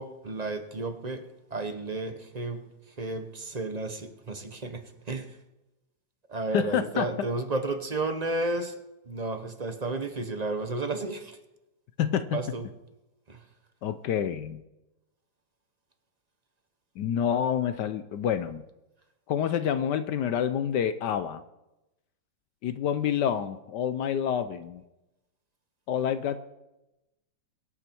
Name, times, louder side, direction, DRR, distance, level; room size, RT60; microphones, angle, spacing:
voice 1, 0.0-5.4 6.3-8.8 9.1-11.4 12.3-12.7 13.3-13.4, right 2 dB, 35° right, 8 dB, 0.7 m, -32 dB
voice 2, 6.5-7.1 12.0-12.4 13.8-14.6 17.0-18.6 19.3-21.4 22.6-24.8 25.9-26.4, left 9 dB, 70° left, 11 dB, 1.2 m, -28 dB
23.0 x 8.6 x 4.5 m, 0.97 s
omnidirectional pair, 2.1 m